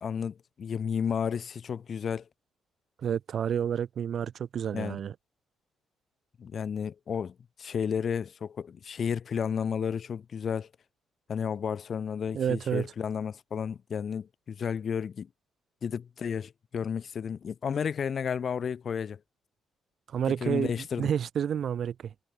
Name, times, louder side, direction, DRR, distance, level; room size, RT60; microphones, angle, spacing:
voice 1, 0.0-2.2 4.7-5.0 6.4-10.7 11.3-15.3 15.8-19.2 20.4-21.1, left 7 dB, 50° left, 0.7 m, -32 dB
voice 2, 3.0-5.1 12.3-12.9 20.1-22.1, right 8 dB, 60° right, 0.7 m, -30 dB
cardioid pair, 90°, 0 cm